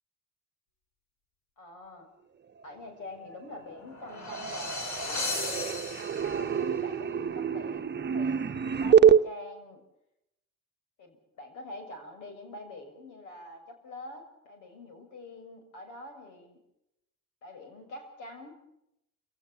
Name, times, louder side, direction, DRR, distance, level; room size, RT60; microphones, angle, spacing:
voice 1, 1.6-2.1 2.6-5.4 6.2-9.8 11.0-16.6 17.4-18.5, left 2 dB, 85° left, 5 dB, 6.9 m, -45 dB
sound 1, 3.2-3.8 4.0-9.2, right 8 dB, 35° right, 1.0 m, -26 dB
sound 2, 3.6-6.6, left 3 dB, 70° left, 4.2 m, -36 dB
29.0 x 17.5 x 7.2 m, 0.84 s
cardioid pair, 90°, 30 cm